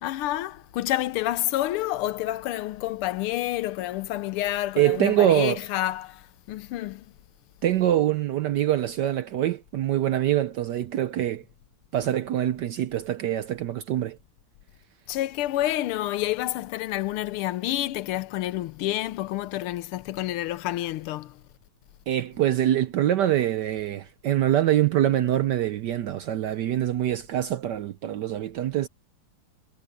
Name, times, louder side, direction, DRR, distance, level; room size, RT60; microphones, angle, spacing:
voice 1, 0.0-7.1 15.1-21.4, left 15 dB, 80° left, 1.6 m, -29 dB
voice 2, 4.8-5.6 7.6-11.4 11.9-14.2 22.1-28.9, right 12 dB, 70° right, 1.0 m, -24 dB
omnidirectional pair, 2.4 m